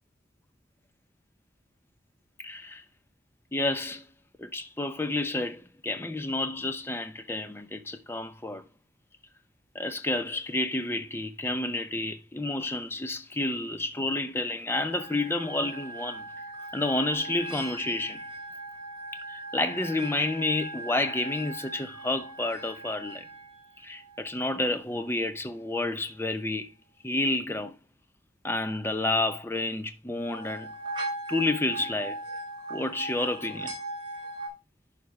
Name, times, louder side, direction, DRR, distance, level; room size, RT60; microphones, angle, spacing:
voice 1, 2.4-2.8 3.5-4.0 4.4-8.6 9.7-16.3 16.7-18.2 19.3-23.2 23.8-26.7 27.0-27.8 28.4-30.7 31.3-32.2 32.7-33.8, left 2 dB, 15° left, 0.6 m, -30 dB
sound 1, 14.8-24.7 30.1-34.5, right 2 dB, 30° right, 2.8 m, -39 dB
11.0 x 5.0 x 3.2 m
head